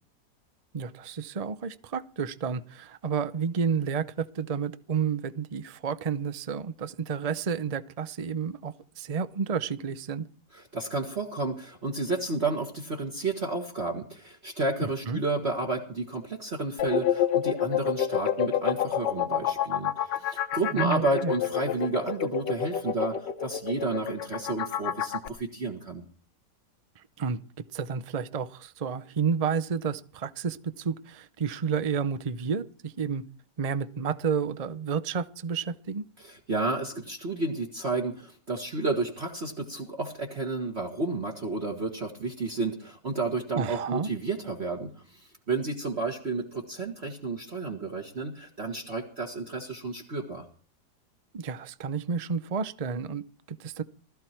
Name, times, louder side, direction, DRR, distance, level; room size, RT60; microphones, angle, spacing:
voice 1, 0.7-10.3 14.8-15.2 20.7-21.3 27.0-33.2 33.6-36.0 43.5-44.1 51.3-53.8, right 6 dB, 60° right, 13 dB, 0.3 m, -31 dB
voice 2, 10.5-26.0 36.2-50.4, right 3 dB, 35° right, 1 dB, 2.1 m, -31 dB
sound 1, 16.8-25.3, left 10 dB, 80° left, 1.7 m, -28 dB
19.5 x 13.5 x 4.5 m, 0.44 s
omnidirectional pair, 1.9 m